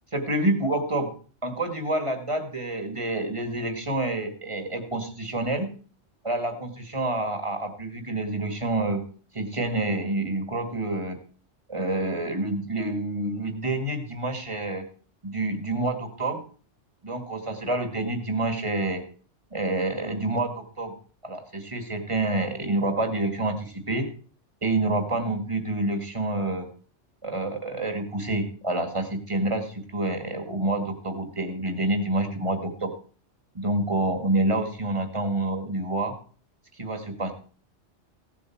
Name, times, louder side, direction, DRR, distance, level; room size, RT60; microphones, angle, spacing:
voice 1, 0.1-1.1 1.4-5.7 6.2-9.0 9.3-11.2 11.7-14.9 15.2-16.4 17.0-19.0 19.5-20.9 21.2-24.1 24.6-26.7 27.2-32.9 33.5-36.1 36.8-37.3, right 2 dB, 25° right, 6 dB, 2.0 m, -28 dB
16.0 x 7.9 x 4.6 m, 0.41 s
omnidirectional pair, 1.2 m